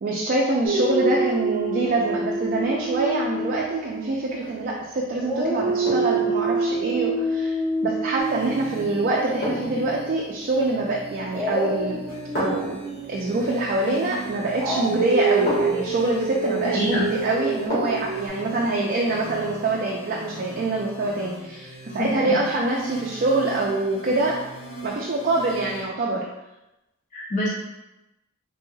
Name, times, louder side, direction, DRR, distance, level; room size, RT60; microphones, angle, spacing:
voice 1, 0.0-12.1 12.4-12.8 13.1-24.4 24.8-26.3, right 2 dB, 45° right, -2 dB, 0.4 m, -25 dB
Dog, 0.6-4.8 5.2-10.2 11.3-18.3, right 3 dB, 15° right, 0.7 m, -27 dB
sound 1, 4.3-4.6 5.8-6.3 8.4-8.6 9.4-9.9 11.2-11.6 12.3-12.8 14.5-14.6 15.5-15.9 17.7-18.1 18.5-18.6, equal, 55° left, 1.4 m, -30 dB
sound 2, 8.2-25.8, right 2 dB, 85° left, 1.2 m, -39 dB
voice 2, 16.7-17.1 22.0-22.4 27.1-27.5, left 1 dB, 40° left, -5 dB, 0.5 m, -26 dB
3.3 x 3.1 x 2.2 m, 0.95 s
head